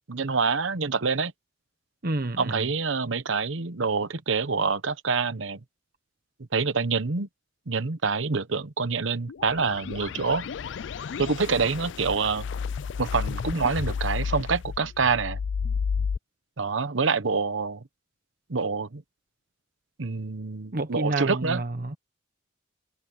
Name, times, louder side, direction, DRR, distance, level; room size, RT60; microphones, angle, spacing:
voice 1, 0.1-1.3 2.4-5.6 6.5-7.3 7.7-10.5 11.2-12.5 13.0-15.4 16.6-17.8 18.5-19.0 20.0-21.6, right 4 dB, 80° right, 1.0 m, -26 dB
voice 2, 2.0-2.7 20.7-22.0, right 2 dB, 50° right, 1.1 m, -29 dB
sound 1, 9.3-16.2, left 6 dB, 65° left, 0.4 m, -32 dB
head